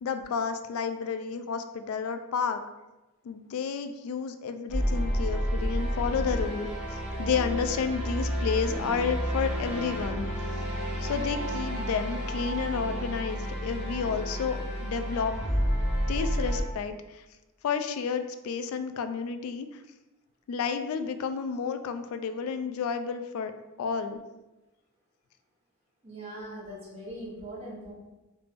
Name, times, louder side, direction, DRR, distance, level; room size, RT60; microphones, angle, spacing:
voice 1, 0.0-2.6 3.2-10.3 11.0-15.5 16.1-17.2 17.6-19.8 20.5-23.5 23.8-24.2, left 6 dB, 85° left, 10 dB, 0.3 m, -31 dB
sound 1, 4.7-16.6, equal, 5° right, 0.7 m, -30 dB
voice 2, 26.0-27.9, right 1 dB, 30° right, -7 dB, 1.1 m, -41 dB
3.3 x 3.2 x 2.5 m, 1.1 s
head